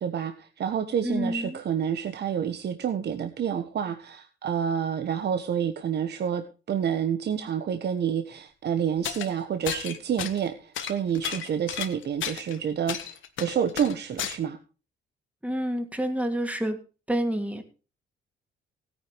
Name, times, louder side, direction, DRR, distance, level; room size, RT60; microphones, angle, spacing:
voice 1, 0.0-6.4 6.7-14.6, right 8 dB, 55° right, 8 dB, 1.2 m, -28 dB
voice 2, 1.0-1.6 15.4-16.8 17.1-17.6, equal, 5° right, 5 dB, 2.7 m, -28 dB
sound 1, 9.0-9.3 9.7-10.5 10.8-12.6 12.9-14.4, left 10 dB, 75° left, 1.5 m, -33 dB
16.5 x 9.9 x 3.3 m, 0.33 s
cardioid pair, 90°, 20 cm